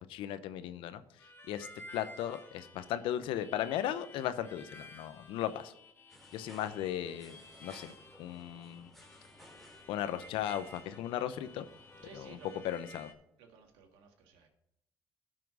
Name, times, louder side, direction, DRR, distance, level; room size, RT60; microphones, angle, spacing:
voice 1, 0.0-1.7 1.9-5.7 6.3-7.4 7.6-7.9 8.2-8.9 9.9-11.7 12.1-12.4 12.6-13.1, left 11 dB, 80° left, 12 dB, 0.8 m, -36 dB
Harmonica, 1.2-13.1, left 2 dB, 25° left, 2.1 m, -54 dB
sound 1, 6.1-12.6, left 1 dB, ahead, 2.7 m, -58 dB
voice 2, 12.0-12.8 13.4-14.5, right 5 dB, 85° right, 3 dB, 1.9 m, -55 dB
12.5 x 5.9 x 4.8 m, 0.80 s
supercardioid pair, 70°, 9 cm